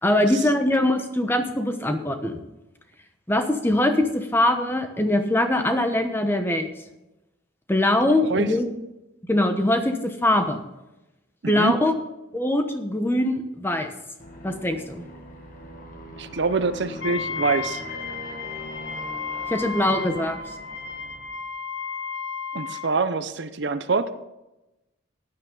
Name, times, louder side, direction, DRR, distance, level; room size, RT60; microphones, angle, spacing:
voice 1, 0.0-2.4 3.3-6.7 7.7-8.7 9.3-10.6 11.5-11.9 12.3-13.9 14.4-15.0 19.5-20.4, left 1 dB, 10° left, 6 dB, 0.9 m, -22 dB
voice 2, 11.4-11.7 16.2-17.8 22.5-24.1, right 4 dB, 55° right, 12 dB, 0.6 m, -25 dB
Aircraft, 14.2-21.5, equal, 40° left, 1.7 m, -41 dB
Wind instrument woodwind instrument, 17.0-22.9, left 5 dB, 60° left, 1.1 m, -33 dB
15.5 x 9.6 x 3.9 m, 0.98 s
head